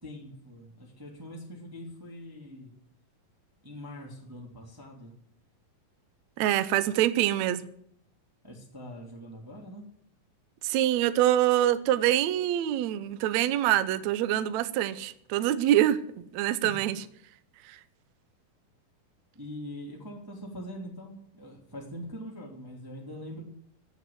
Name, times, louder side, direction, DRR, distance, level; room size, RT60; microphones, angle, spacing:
voice 1, 0.0-2.8 3.6-5.1 8.4-9.9 16.6-16.7 19.3-23.4, equal, 5° right, 2.0 m, -43 dB
voice 2, 6.4-7.7 10.6-16.0 16.3-16.9 17.6-17.8, right 12 dB, 85° right, 1.5 m, -25 dB
15.5 x 8.1 x 7.8 m
omnidirectional pair, 4.3 m